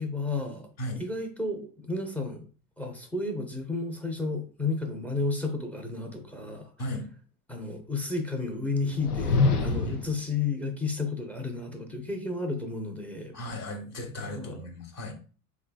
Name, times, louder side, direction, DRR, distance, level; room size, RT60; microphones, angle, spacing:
voice 1, 0.0-0.7 1.0-2.5 2.8-6.7 7.5-13.4 14.4-14.6, left 3 dB, 5° left, 5 dB, 0.5 m, -32 dB
sound 1, 8.8-10.2, left 4 dB, 75° left, 0.6 m, -25 dB
voice 2, 13.3-15.1, left 1 dB, 35° left, 2 dB, 1.0 m, -36 dB
3.9 x 3.2 x 2.2 m, 0.38 s
figure-of-eight pair, 70°, 46 cm